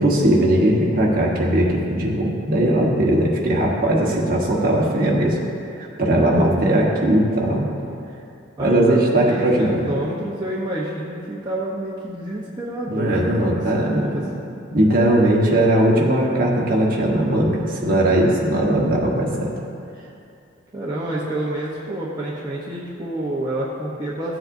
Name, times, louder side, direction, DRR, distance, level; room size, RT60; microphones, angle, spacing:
voice 1, 0.0-5.4 5.8-7.7 8.6-9.9 12.9-14.4 14.7-19.5, right 1 dB, 40° right, -3 dB, 1.2 m, -19 dB
voice 2, 6.2-6.9 8.6-14.5 20.7-24.4, right 1 dB, 20° right, -7 dB, 0.8 m, -28 dB
14.0 x 7.6 x 2.6 m, 2.6 s
head